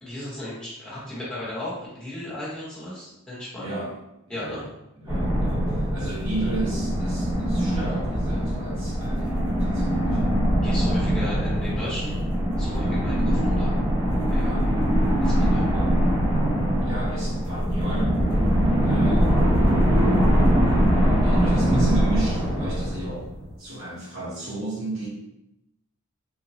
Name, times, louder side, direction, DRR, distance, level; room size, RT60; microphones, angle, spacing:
voice 1, 0.0-3.8 4.3-4.6 10.6-12.2 12.6-13.7 14.3-14.5 15.2-15.7, left 1 dB, 5° left, -9 dB, 1.0 m, -35 dB
voice 2, 3.6-3.9 4.3-4.7 5.0-10.2 14.3-14.7 15.6-16.0 16.8-18.2 18.8-19.3 20.7-23.2 23.6-25.1, right 2 dB, 70° right, -6 dB, 1.3 m, -33 dB
sound 1, 5.1-23.5, equal, 20° right, 1.0 m, -22 dB
3.8 x 2.2 x 3.0 m, 0.86 s
head